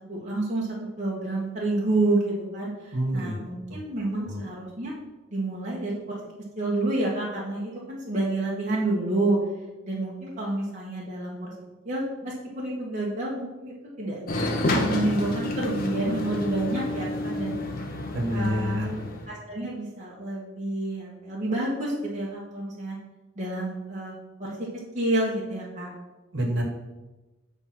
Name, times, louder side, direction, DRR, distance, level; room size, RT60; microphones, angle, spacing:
voice 1, 0.1-0.7 1.0-4.9 5.3-6.2 6.6-9.4 9.8-11.5 11.8-14.2 14.6-17.5 18.3-18.8 19.3-23.0 23.3-24.5 24.9-25.9, right 2 dB, 35° right, -5 dB, 1.3 m, -29 dB
voice 2, 2.9-3.4 3.7-3.8 4.1-4.4 18.1-19.0 26.3-26.6, equal, 60° right, -1 dB, 1.6 m, -28 dB
sound 1, 14.3-19.3, left 1 dB, 45° left, 1.0 m, -29 dB
7.8 x 3.5 x 6.0 m, 1.1 s
head